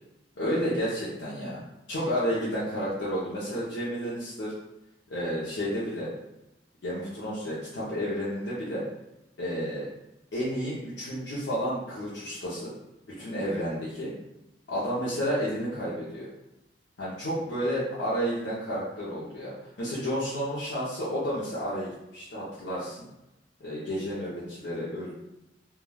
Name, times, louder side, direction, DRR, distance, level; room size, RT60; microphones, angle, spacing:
voice 1, 0.4-1.6 1.9-4.5 5.1-6.1 6.8-8.8 9.4-9.9 10.3-12.7 13.1-14.1 14.7-16.3 17.0-23.0 23.6-25.1, equal, 75° left, -9 dB, 0.6 m, -31 dB
3.3 x 2.2 x 2.2 m, 0.91 s
head